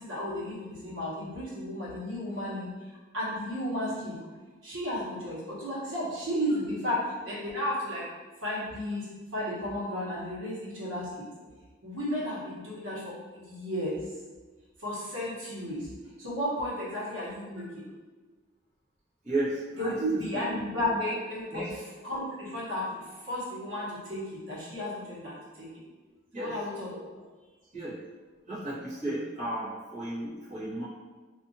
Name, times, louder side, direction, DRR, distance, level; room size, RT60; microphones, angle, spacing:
voice 1, 0.0-2.7 3.1-4.1 4.6-8.1 8.4-9.1 9.3-11.3 11.8-14.0 14.8-15.9 16.2-17.9 19.8-21.7 22.0-23.0 23.3-25.7 26.4-27.0, left 1 dB, 80° right, -7 dB, 1.0 m, -33 dB
voice 2, 19.2-20.6 20.9-21.0 21.5-21.8 26.3-26.5 27.7-28.0 28.5-30.8, right 1 dB, 35° right, -10 dB, 1.1 m, -34 dB
2.5 x 2.4 x 2.6 m, 1.3 s
head